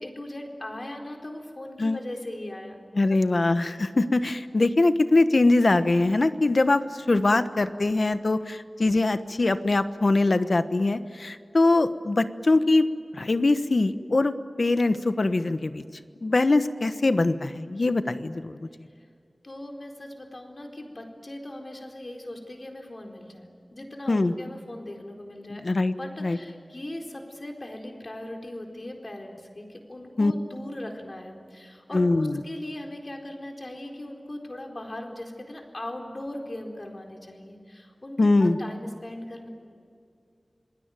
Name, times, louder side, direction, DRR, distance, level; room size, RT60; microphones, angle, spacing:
voice 1, 0.0-2.8 3.1-3.6 19.0-19.1 19.4-25.6 26.0-39.5, left 1 dB, 45° left, 2 dB, 4.3 m, -39 dB
voice 2, 3.0-12.9 13.1-15.8 16.2-18.5 24.1-24.3 25.5-25.9 26.2-26.4 30.2-30.3 31.9-32.4 38.2-38.6, left 2 dB, 65° left, 11 dB, 1.2 m, -22 dB
27.0 x 20.5 x 9.2 m, 2.4 s
wide cardioid pair, 70°, 0 cm